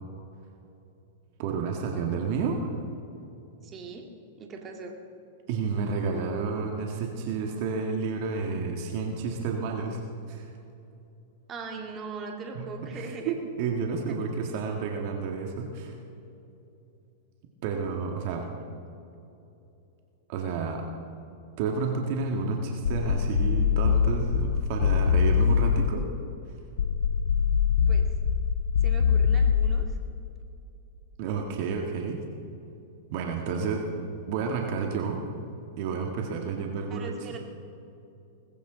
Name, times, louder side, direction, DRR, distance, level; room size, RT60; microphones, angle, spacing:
voice 1, 1.4-2.7 5.5-10.0 10.3-10.5 12.6-13.0 13.3-15.9 17.6-18.5 20.3-20.9 21.6-26.1 31.2-32.2 33.1-33.9 34.3-35.2 35.8-37.1, right 5 dB, 55° right, 2 dB, 1.7 m, -30 dB
voice 2, 3.6-5.0 11.5-13.4 18.4-18.9 27.9-28.1 28.8-30.0 36.9-37.4, right 4 dB, 30° right, 2 dB, 2.1 m, -40 dB
sound 1, 22.9-26.1 26.8-30.1, left 7 dB, 85° left, 0.5 m, -23 dB
20.0 x 15.0 x 3.9 m, 2.8 s
hypercardioid pair, 110°, 0 cm